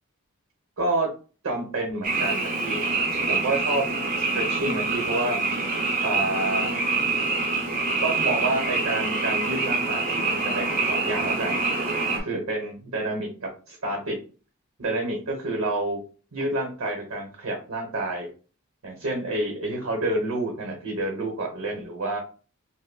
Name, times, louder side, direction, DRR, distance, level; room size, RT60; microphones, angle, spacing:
voice 1, 0.8-1.1 1.4-2.9 3.3-3.8 4.3-5.4 6.0-6.8 8.0-11.6 12.1-14.2 14.8-16.0 16.3-18.3 18.8-22.2, right 2 dB, 85° right, 1 dB, 1.0 m, -28 dB
Frog, 2.0-12.2, right 3 dB, 40° right, 0.7 m, -26 dB
5.5 x 2.1 x 2.2 m, 0.37 s
head